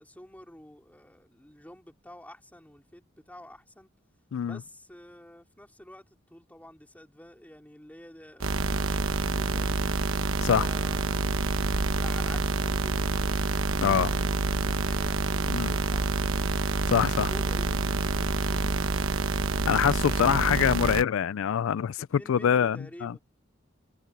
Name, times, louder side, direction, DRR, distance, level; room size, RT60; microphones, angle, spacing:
voice 1, 0.0-3.9 4.4-9.8 10.5-11.5 11.9-16.2 16.9-18.9 22.1-23.2, left 1 dB, 10° left, 3.9 m, -49 dB
sound 1, 8.4-21.0, right 3 dB, 85° right, 1.1 m, -27 dB
voice 2, 16.9-17.3 19.7-23.1, left 8 dB, 80° left, 0.4 m, -25 dB
head